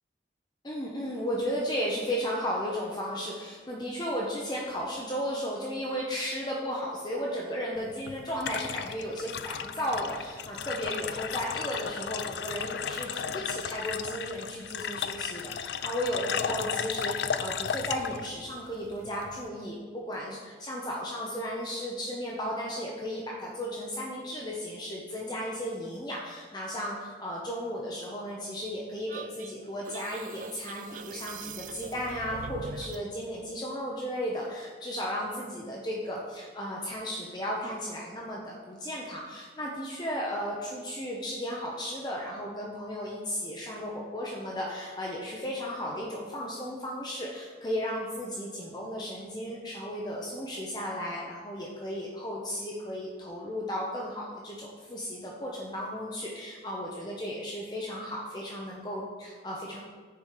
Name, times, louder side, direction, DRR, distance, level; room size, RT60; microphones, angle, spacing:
voice 1, 0.6-59.8, equal, 25° left, -3 dB, 0.8 m, -35 dB
sound 1, 7.8-19.5, left 7 dB, 70° left, 0.4 m, -35 dB
sound 2, 29.1-33.1, right 5 dB, 45° right, 0.4 m, -42 dB
6.8 x 5.0 x 6.5 m, 1.5 s
head